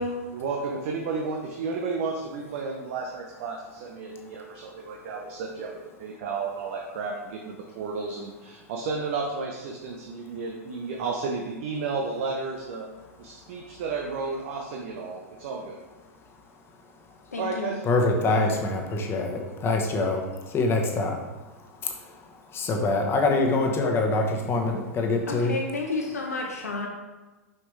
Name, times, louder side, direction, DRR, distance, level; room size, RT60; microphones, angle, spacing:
voice 1, 0.3-12.9 13.2-15.8 17.4-17.8 18.2-18.4, right 4 dB, 55° right, 1 dB, 0.8 m, -32 dB
voice 2, 17.3-17.8 25.3-26.9, left 3 dB, 85° left, 0 dB, 0.9 m, -31 dB
voice 3, 17.9-21.2 21.8-21.9 22.5-25.5, left 3 dB, 30° left, 2 dB, 1.1 m, -25 dB
6.2 x 5.8 x 3.3 m, 1.2 s
hypercardioid pair, 100°, 8 cm